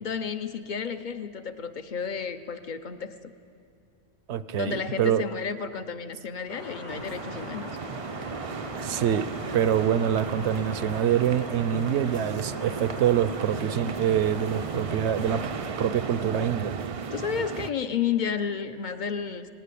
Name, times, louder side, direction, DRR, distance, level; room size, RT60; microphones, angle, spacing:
voice 1, 0.0-3.1 4.5-7.8 17.1-19.5, left 6 dB, 45° left, 11 dB, 0.8 m, -31 dB
voice 2, 4.3-5.2 8.8-15.4 15.8-16.8, right 9 dB, 70° right, 14 dB, 0.9 m, -25 dB
sound 1, 6.5-16.5, equal, 70° left, 6.2 m, -40 dB
sound 2, 6.9-17.7, right 6 dB, 50° right, 0.4 m, -35 dB
18.5 x 18.0 x 8.4 m, 2.6 s
omnidirectional pair, 1.2 m